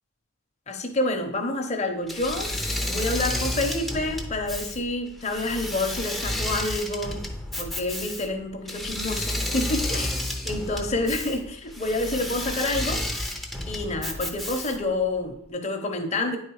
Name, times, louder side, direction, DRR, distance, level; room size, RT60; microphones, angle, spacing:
voice 1, 0.7-2.5 2.9-7.2 7.6-10.2 10.5-13.0 13.7-16.4, left 2 dB, 30° left, 4 dB, 0.9 m, -28 dB
Engine / Mechanisms, 2.1-15.0, left 1 dB, ahead, 0.6 m, -31 dB
9.8 x 4.0 x 4.7 m, 0.73 s
head